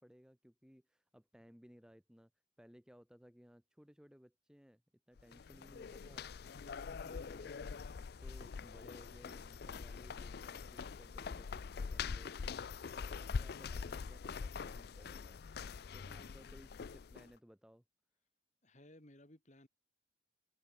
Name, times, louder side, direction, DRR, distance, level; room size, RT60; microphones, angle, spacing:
voice 1, 0.0-2.3 2.6-4.8 5.1-6.3 6.6-12.6 12.9-15.4 15.9-17.8, equal, 5° right, 0.9 m, -61 dB
sound 1, 5.2-17.3, left 5 dB, 50° left, 0.4 m, -44 dB
voice 2, 16.1-16.6 18.6-19.7, left 1 dB, 35° left, 2.4 m, -60 dB
head